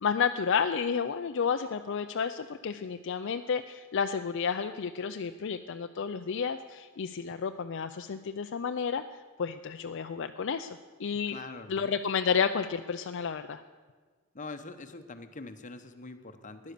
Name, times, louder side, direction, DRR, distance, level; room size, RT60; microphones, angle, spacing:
voice 1, 0.0-9.0 9.4-10.7 11.0-11.4 11.7-13.6, left 6 dB, 60° left, 7 dB, 0.5 m, -31 dB
voice 2, 11.3-11.9 14.3-16.7, left 3 dB, 35° left, 8 dB, 1.0 m, -44 dB
15.0 x 10.5 x 6.7 m, 1.5 s
head